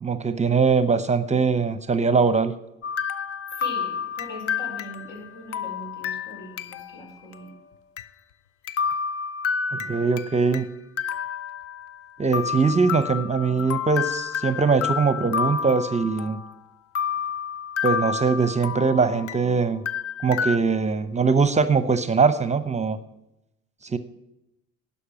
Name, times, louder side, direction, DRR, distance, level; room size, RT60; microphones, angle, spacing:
voice 1, 0.0-2.5 9.7-10.6 12.2-16.4 17.8-19.8 20.2-23.0 23.8-24.0, right 5 dB, 25° right, 12 dB, 0.7 m, -22 dB
sound 1, 2.8-7.0 7.3-7.4 8.0-8.1 8.7-10.6 11.0-12.0 12.3-16.5 17.0-19.5 19.9-20.6, left 7 dB, 50° left, 0.7 m, -30 dB
voice 2, 3.5-7.5, left 1 dB, 70° left, 0 dB, 5.1 m, -41 dB
11.5 x 5.5 x 8.7 m, 0.87 s
hypercardioid pair, 70°, 29 cm